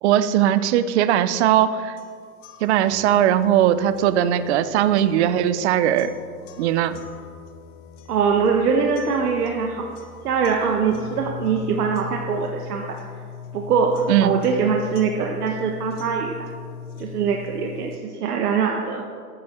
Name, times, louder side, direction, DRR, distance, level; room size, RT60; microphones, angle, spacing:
voice 1, 0.0-2.0 2.6-6.1 6.6-6.9 14.1-14.3, right 11 dB, 50° right, 13 dB, 0.6 m, -19 dB
sound 1, 2.0-18.0, left 7 dB, 55° left, 1.1 m, -39 dB
voice 2, 8.1-9.9 10.2-12.8 13.5-16.3 17.0-19.0, right 6 dB, 90° right, 2 dB, 1.2 m, -22 dB
13.0 x 9.4 x 4.3 m, 2.1 s
supercardioid pair, 150°, 45 cm